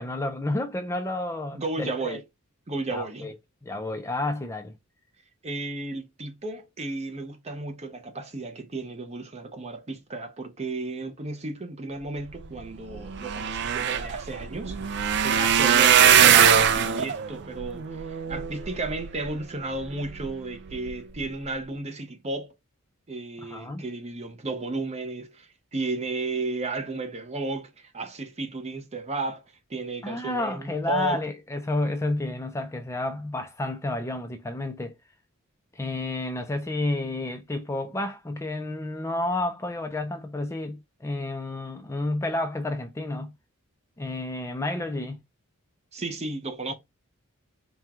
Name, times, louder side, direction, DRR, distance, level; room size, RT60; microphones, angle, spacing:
voice 1, 0.0-2.2 2.9-3.3 3.6-4.7 23.4-23.9 30.0-34.9 35.7-43.3 44.0-45.2, left 2 dB, 15° left, 0.4 m, -30 dB
voice 2, 1.5-2.2 2.7-3.3 5.4-22.5 23.1-29.4 29.7-31.2 45.9-46.7, right 3 dB, 30° right, 0.7 m, -33 dB
sound 1, 12.6-12.7 12.9-19.3 19.8-20.3 20.7-20.9 21.2-21.3, right 8 dB, 55° right, 0.4 m, -21 dB
4.4 x 2.3 x 3.5 m
head